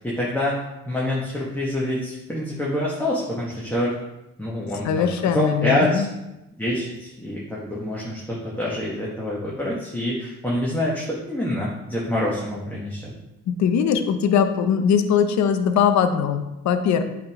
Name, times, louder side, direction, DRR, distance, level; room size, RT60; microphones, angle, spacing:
voice 1, 0.0-4.0 4.4-6.1 6.6-13.1, left 1 dB, 5° left, -6 dB, 1.3 m, -26 dB
voice 2, 4.8-6.1 13.5-17.0, left 7 dB, 65° left, 9 dB, 0.6 m, -21 dB
7.7 x 3.6 x 3.6 m, 0.93 s
cardioid pair, 90°, 30 cm